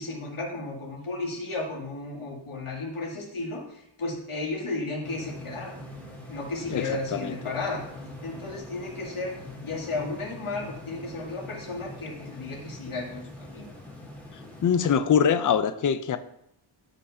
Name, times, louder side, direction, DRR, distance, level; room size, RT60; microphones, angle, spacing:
voice 1, 0.0-5.7 6.3-7.8 8.2-9.4 9.6-13.7, left 2 dB, 85° left, -3 dB, 2.5 m, -34 dB
sound 1, 5.0-15.0, left 1 dB, 5° left, 1.9 m, -43 dB
voice 2, 6.7-7.4 14.6-16.2, left 7 dB, 40° left, 11 dB, 0.5 m, -23 dB
13.0 x 5.5 x 2.7 m, 0.75 s
wide cardioid pair, 160°, 49 cm